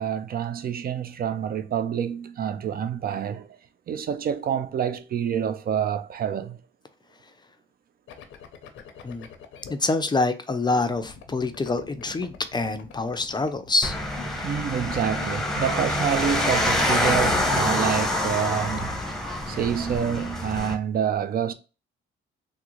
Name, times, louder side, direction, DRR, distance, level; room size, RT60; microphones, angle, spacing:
voice 1, 0.0-3.6 3.9-6.6 10.7-10.8 14.4-19.0 19.5-21.5, right 8 dB, 50° right, 0.4 m, -27 dB
sound 1, 8.1-9.7 10.9-16.6 16.9-19.0, left 7 dB, 90° left, 0.7 m, -44 dB
voice 2, 9.7-14.0 14.4-14.5, left 3 dB, 20° left, 0.4 m, -26 dB
sound 2, 13.8-20.7, left 1 dB, ahead, 0.8 m, -26 dB
3.6 x 2.1 x 3.0 m
cardioid pair, 90°, 20 cm